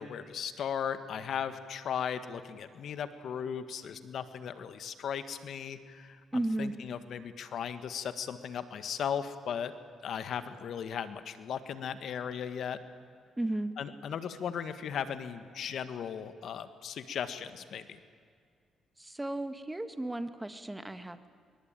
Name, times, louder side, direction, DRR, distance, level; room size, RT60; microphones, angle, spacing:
voice 1, 0.0-9.7 10.0-12.8 13.8-18.0, left 8 dB, 70° left, 11 dB, 1.6 m, -37 dB
voice 2, 6.3-6.7 13.4-13.7 19.0-21.3, right 1 dB, 15° right, 10 dB, 1.9 m, -34 dB
24.0 x 24.0 x 9.1 m, 2.1 s
cardioid pair, 70°, 0 cm